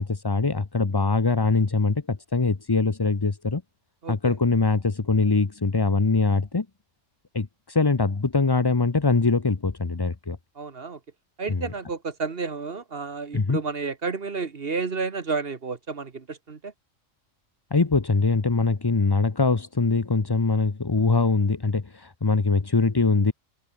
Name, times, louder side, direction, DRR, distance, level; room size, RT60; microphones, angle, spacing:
voice 1, 0.0-3.6 4.1-6.7 7.3-10.4 11.5-11.6 13.3-13.6 17.7-23.3, left 3 dB, 20° left, 0.7 m, -23 dB
voice 2, 4.0-4.3 10.6-11.0 11.4-16.7, right 4 dB, 45° right, 1.6 m, -31 dB
omnidirectional pair, 1.4 m